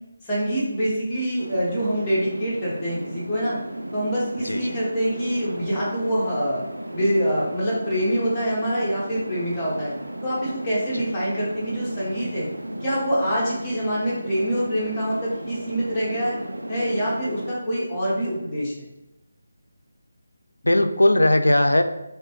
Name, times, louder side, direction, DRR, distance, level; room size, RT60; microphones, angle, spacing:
voice 1, 0.2-3.6 3.9-6.6 6.9-9.9 10.2-12.5 12.8-16.4 16.7-18.7, equal, 10° left, -8 dB, 1.2 m, -25 dB
sound 1, 1.4-17.5, right 1 dB, 85° right, 0.4 m, -35 dB
voice 2, 4.4-4.7 10.9-11.1 20.6-21.8, left 1 dB, 85° left, 8 dB, 0.3 m, -18 dB
3.1 x 2.9 x 3.0 m, 0.91 s
figure-of-eight pair, 160°, 0 cm